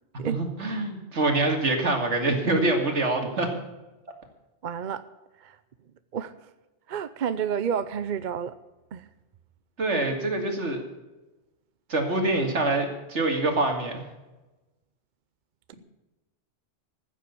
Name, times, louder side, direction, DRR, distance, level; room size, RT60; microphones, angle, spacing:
voice 1, 0.1-3.5 9.8-10.8 11.9-14.0, right 2 dB, 75° right, 4 dB, 2.6 m, -25 dB
voice 2, 4.6-5.0 5.4-5.6 6.1-6.3 6.9-8.6 8.9-9.0, right 7 dB, 50° right, 13 dB, 0.7 m, -30 dB
15.0 x 7.8 x 8.5 m, 1.1 s
omnidirectional pair, 1.2 m